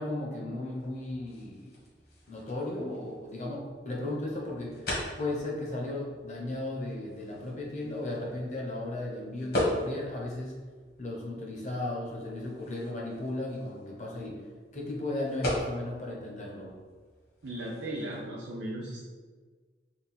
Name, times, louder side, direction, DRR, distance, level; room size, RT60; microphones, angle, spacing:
voice 1, 0.0-1.7 2.3-10.5 11.0-14.3 14.7-16.7, left 2 dB, 40° left, -2 dB, 0.8 m, -35 dB
sound 1, 0.6-18.3, left 1 dB, 60° left, 1.2 m, -40 dB
voice 2, 17.4-19.1, right 1 dB, 80° right, -5 dB, 0.6 m, -36 dB
3.7 x 2.2 x 4.2 m, 1.5 s
head